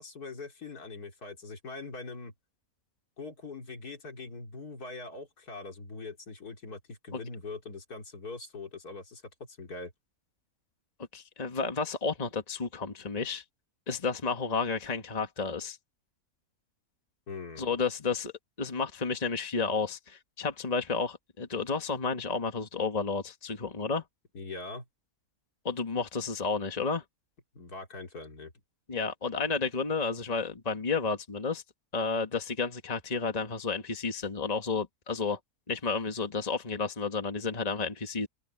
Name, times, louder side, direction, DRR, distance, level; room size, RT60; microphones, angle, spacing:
voice 1, 0.0-2.3 3.2-9.2 9.5-9.9 17.3-17.8 24.3-24.9 27.5-28.5, left 3 dB, 75° left, 3.5 m, -42 dB
voice 2, 11.1-13.4 13.9-15.8 17.6-18.3 18.6-24.0 25.6-27.0 28.9-31.6 31.9-35.4 35.7-38.3, left 4 dB, 25° left, 1.6 m, -31 dB
open air
omnidirectional pair, 1.6 m